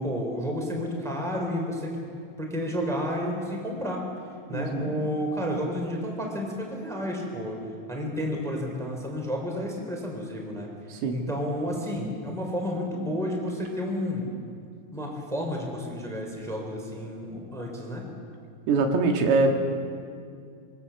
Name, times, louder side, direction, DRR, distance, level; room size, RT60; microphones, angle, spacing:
voice 1, 0.0-2.0 2.4-4.0 4.5-7.6 7.9-10.7 11.1-14.3 14.9-18.1, equal, ahead, 1 dB, 2.8 m, -31 dB
voice 2, 4.5-4.9 10.9-11.2 18.7-19.6, right 3 dB, 80° right, 3 dB, 4.4 m, -23 dB
25.5 x 22.5 x 7.2 m, 2.3 s
omnidirectional pair, 5.9 m